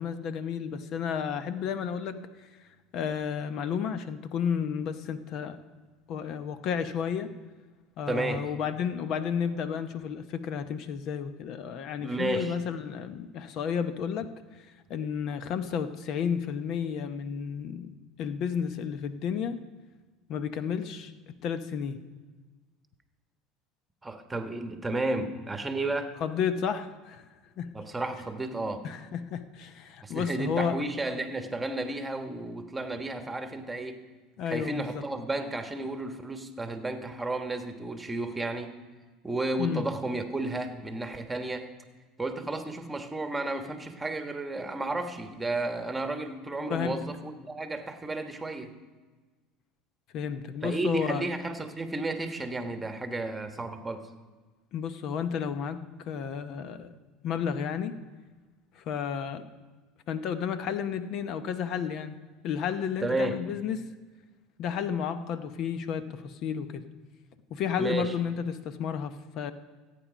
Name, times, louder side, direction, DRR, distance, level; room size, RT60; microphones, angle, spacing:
voice 1, 0.0-2.5 2.9-5.6 6.1-7.3 8.0-17.9 18.2-19.6 20.3-22.0 26.2-27.3 27.6-27.7 28.8-30.8 34.4-35.0 39.6-39.8 46.7-47.0 50.1-51.2 54.7-56.9 57.2-58.0 58.7-59.4 60.1-62.2 62.4-63.9 64.6-66.8 67.5-69.5, left 7 dB, 55° left, 11 dB, 0.8 m, -32 dB
voice 2, 8.1-8.5 12.0-12.6 24.0-26.1 27.7-28.8 30.0-34.0 34.5-38.7 39.2-41.7 42.2-48.7 50.6-54.1 63.0-63.4 67.8-68.1, right 2 dB, 15° right, 7 dB, 1.2 m, -32 dB
15.0 x 8.6 x 5.1 m, 1.3 s
supercardioid pair, 95°, 0 cm